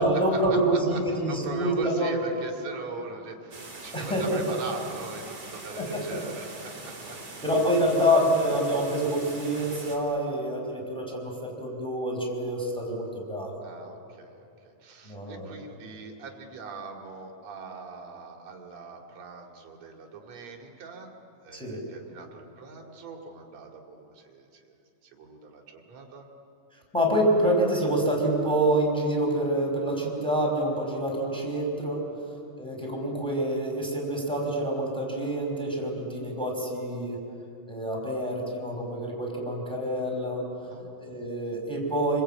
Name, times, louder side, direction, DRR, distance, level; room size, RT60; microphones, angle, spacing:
voice 1, 0.0-2.2 3.9-4.4 5.8-6.2 7.4-13.5 15.1-15.5 21.5-21.8 26.9-32.1 32.6-37.2 37.7-40.4 41.0-42.2, right 1 dB, ahead, 0 dB, 5.1 m, -27 dB
voice 2, 1.3-7.2 13.6-21.1 21.4-24.8 25.0-26.3 32.1-32.3 40.6-40.9, right 4 dB, 55° right, 2 dB, 3.6 m, -42 dB
sound 1, 3.5-10.0, right 3 dB, 30° right, 3.7 m, -42 dB
29.5 x 21.5 x 8.8 m, 2.7 s
omnidirectional pair, 3.9 m